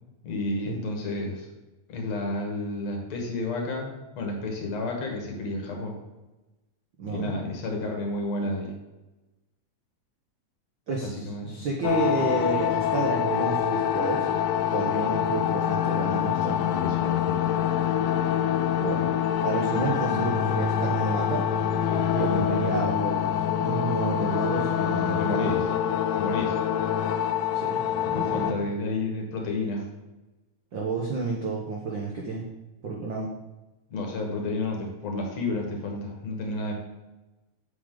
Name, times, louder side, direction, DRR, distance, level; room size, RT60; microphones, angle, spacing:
voice 1, 0.2-1.5 1.9-6.0 7.1-8.7 11.0-11.7 14.8-14.9 16.5-17.4 19.7-20.2 21.9-23.0 25.2-26.6 28.1-29.9 33.9-36.7, left 2 dB, 65° left, 1 dB, 2.6 m, -31 dB
voice 2, 7.0-7.3 10.9-14.3 14.7-16.6 18.8-19.1 19.4-21.5 22.1-25.6 27.5-28.6 30.7-32.4 32.8-33.3, right 3 dB, 70° right, -1 dB, 1.1 m, -30 dB
sound 1, 11.8-28.5, left 9 dB, 85° left, 2.0 m, -25 dB
7.5 x 6.6 x 3.8 m, 1.1 s
omnidirectional pair, 3.4 m